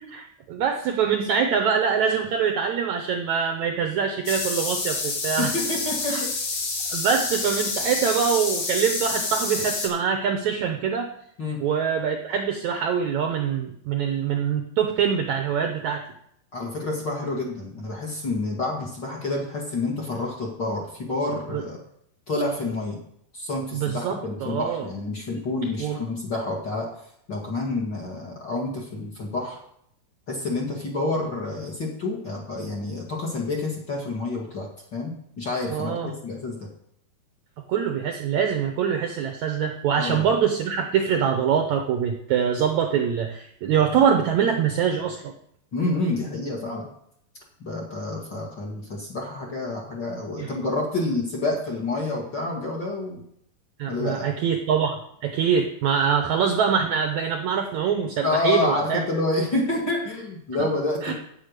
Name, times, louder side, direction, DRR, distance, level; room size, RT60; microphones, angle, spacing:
voice 1, 0.1-5.5 6.1-6.2 6.9-11.1 11.6-16.0 21.5-21.6 23.7-24.9 25.8-26.0 35.7-36.1 37.7-45.3 50.4-50.5 53.8-59.0 61.0-61.1, right 7 dB, 75° right, 4 dB, 1.8 m, -24 dB
sound 1, 4.3-9.9, left 3 dB, 60° left, 3.5 m, -28 dB
voice 2, 5.4-6.3 11.4-11.6 16.5-21.8 22.3-23.0 23.3-26.9 27.3-29.6 30.3-36.7 39.9-40.3 45.7-46.9 47.6-53.2 53.9-54.3 58.2-61.1, left 2 dB, 40° left, -1 dB, 1.9 m, -28 dB
8.8 x 8.2 x 6.6 m, 0.71 s
omnidirectional pair, 4.2 m